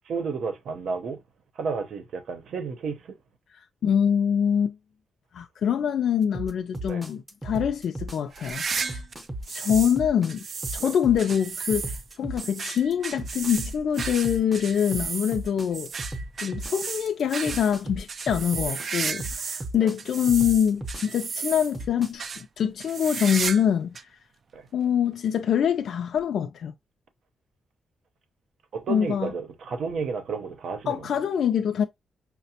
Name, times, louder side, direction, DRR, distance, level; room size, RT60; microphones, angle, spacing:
voice 1, 0.1-1.2 1.6-3.0 6.9-7.0 10.8-10.9 19.8-19.9 24.5-24.6 28.7-31.1, right 5 dB, 65° right, 0.7 m, -32 dB
voice 2, 3.8-4.8 5.3-9.0 9.5-10.4 10.7-15.9 16.4-24.0 24.7-26.7 28.9-29.3 30.9-31.8, left 8 dB, 65° left, 0.4 m, -25 dB
sound 1, 6.3-22.1, right 1 dB, 15° right, 0.7 m, -36 dB
sound 2, 8.3-10.0 10.3-19.7 20.0-21.8 22.2-22.4 22.8-23.7 23.9-24.0 24.8-24.9 26.2-26.3, right 5 dB, 45° right, 0.3 m, -33 dB
5.7 x 2.1 x 2.8 m
wide cardioid pair, 145°, 0 cm